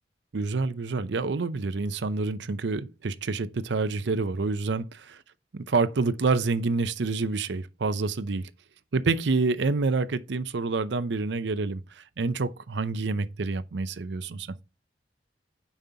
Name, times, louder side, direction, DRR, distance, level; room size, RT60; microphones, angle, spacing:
voice 1, 0.3-5.1 5.5-8.5 8.9-14.5, right 3 dB, 75° right, 0.6 m, -27 dB
7.1 x 5.4 x 2.8 m
head